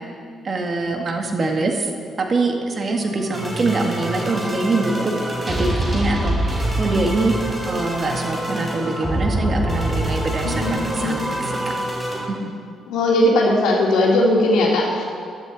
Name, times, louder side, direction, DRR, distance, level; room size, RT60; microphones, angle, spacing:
voice 1, 0.4-1.9 2.2-5.1 5.4-7.3 7.6-11.2 12.3-12.5, right 3 dB, 40° right, 3 dB, 1.7 m, -23 dB
sound 1, 2.9-12.3, right 1 dB, 15° right, 3.7 m, -25 dB
voice 2, 10.4-11.2 12.9-15.0, left 1 dB, 85° left, -2 dB, 2.2 m, -18 dB
14.0 x 12.0 x 4.1 m, 2.2 s
cardioid pair, 90°, 0 cm